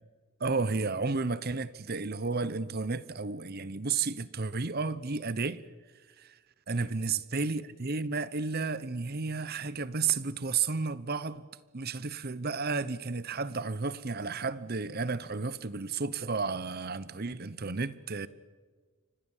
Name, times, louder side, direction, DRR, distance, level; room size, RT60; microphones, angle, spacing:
voice 1, 0.4-5.6 6.2-6.4 6.7-11.5 11.7-18.3, right 4 dB, 45° right, 0.9 m, -32 dB
29.0 x 25.0 x 7.3 m
head